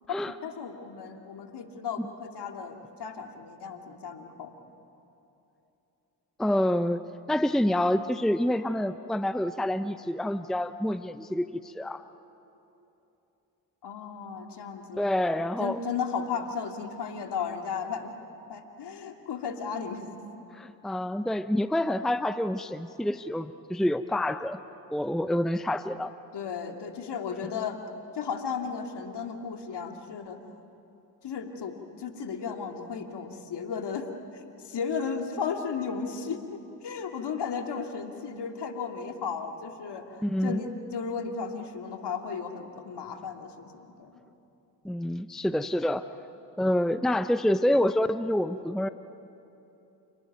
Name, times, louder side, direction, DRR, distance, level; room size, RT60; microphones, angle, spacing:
voice 1, 0.4-4.5 13.8-15.1 15.6-18.1 18.5-20.0 26.3-27.8 28.1-30.4 31.2-34.1 34.6-44.2, left 6 dB, 55° left, 4 dB, 2.7 m, -35 dB
voice 2, 6.4-7.0 7.3-12.0 15.0-15.8 20.5-24.6 24.9-26.1 40.2-40.6 44.8-46.1 46.6-48.9, left 1 dB, ahead, 12 dB, 0.8 m, -27 dB
29.0 x 19.5 x 9.3 m, 2.9 s
hypercardioid pair, 45°, 49 cm